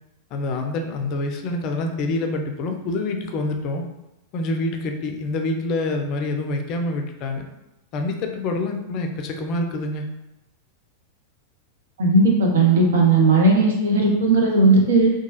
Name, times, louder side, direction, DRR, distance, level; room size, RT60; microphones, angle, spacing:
voice 1, 0.3-3.8 4.3-7.4 7.9-10.1, left 2 dB, 40° left, 4 dB, 0.4 m, -26 dB
voice 2, 12.0-15.1, right 3 dB, 60° right, 0 dB, 0.7 m, -16 dB
2.8 x 2.2 x 3.0 m, 0.93 s
figure-of-eight pair, 90°, 0 cm